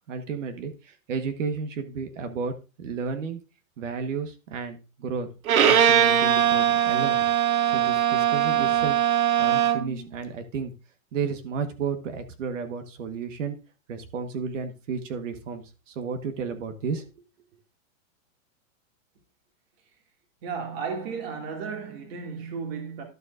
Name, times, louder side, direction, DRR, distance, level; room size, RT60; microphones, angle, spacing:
voice 1, 0.1-3.4 3.8-5.3 5.6-7.3 7.6-9.0 9.4-10.7 11.1-13.6 13.9-17.2, right 5 dB, 65° right, 1.5 m, -32 dB
Bowed string instrument, 5.5-10.0, right 10 dB, 90° right, 1.3 m, -21 dB
voice 2, 20.4-23.0, right 5 dB, 45° right, 2.4 m, -34 dB
12.0 x 7.0 x 2.5 m
supercardioid pair, 165°, 41 cm